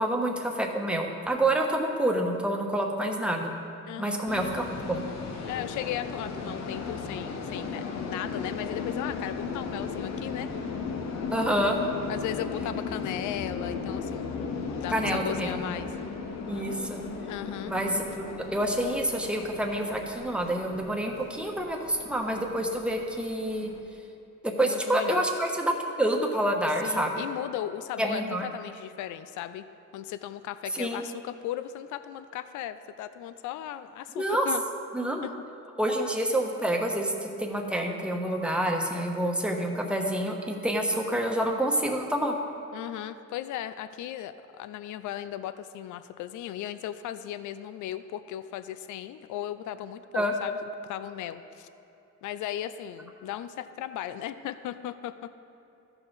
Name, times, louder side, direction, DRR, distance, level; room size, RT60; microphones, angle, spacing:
voice 1, 0.0-3.5 4.0-5.0 11.3-11.8 14.9-15.7 16.5-17.0 17.7-23.7 24.4-27.2 28.0-28.5 30.7-31.0 34.2-34.5 34.9-35.2 35.8-42.3 50.1-50.3, right 1 dB, 5° right, 1 dB, 1.2 m, -28 dB
voice 2, 3.9-4.2 5.4-10.5 12.1-14.3 14.8-15.9 17.3-17.8 24.6-25.3 26.8-29.7 29.9-34.6 35.2-35.3 42.7-50.5 50.9-51.7 52.2-55.3, left 11 dB, 80° left, 12 dB, 0.5 m, -36 dB
sound 1, 4.3-23.8, left 5 dB, 60° left, 1.0 m, -36 dB
14.0 x 5.7 x 4.0 m, 2.9 s
cardioid pair, 90°, 30 cm